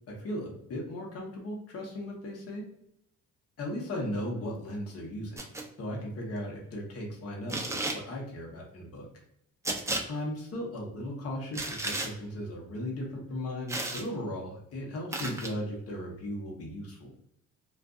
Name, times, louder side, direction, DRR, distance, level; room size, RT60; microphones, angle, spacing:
voice 1, 0.1-2.6 3.6-5.4 5.8-7.6 7.9-9.1 10.1-17.1, left 1 dB, 50° left, -2 dB, 0.9 m, -37 dB
sound 1, 5.4-5.7 7.5-8.0 9.6-10.0 11.5-12.1 13.7-14.1 15.1-15.5, right 2 dB, 10° right, 0.4 m, -33 dB
2.5 x 2.5 x 2.3 m, 0.74 s
cardioid pair, 90°, 30 cm